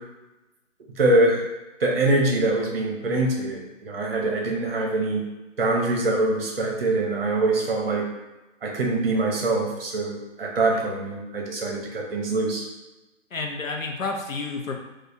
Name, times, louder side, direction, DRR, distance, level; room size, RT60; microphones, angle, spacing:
voice 1, 1.0-1.4 1.8-5.2 5.6-8.0 8.6-12.6, right 2 dB, 45° right, 0 dB, 0.8 m, -24 dB
voice 2, 13.3-14.7, left 3 dB, 90° left, 2 dB, 0.8 m, -30 dB
4.2 x 2.5 x 2.6 m, 1.0 s
figure-of-eight pair, 150°, 39 cm